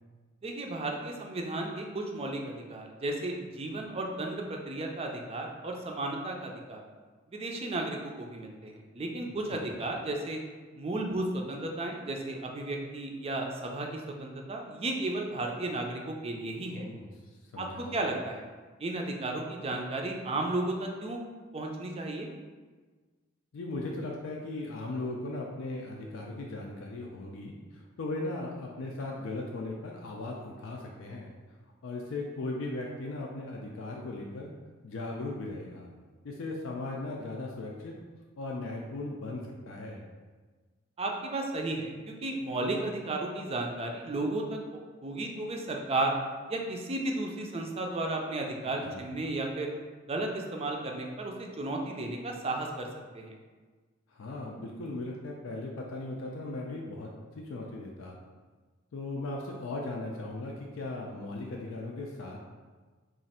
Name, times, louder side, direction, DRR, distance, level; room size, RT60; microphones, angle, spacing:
voice 1, 0.4-6.8 7.3-10.4 10.8-16.9 17.6-18.5 18.8-21.2 21.5-22.3 41.0-44.6 45.0-46.2 46.5-49.7 50.1-52.9 53.1-53.3, right 2 dB, 30° right, 1 dB, 0.4 m, -34 dB
voice 2, 9.2-9.7 16.7-17.1 17.5-18.0 23.5-31.3 31.8-34.5 34.8-35.9 36.2-38.0 38.4-40.1 48.6-49.1 54.1-58.2 58.9-62.5, left 2 dB, 75° left, -1 dB, 0.4 m, -38 dB
3.1 x 2.4 x 4.1 m, 1.4 s
head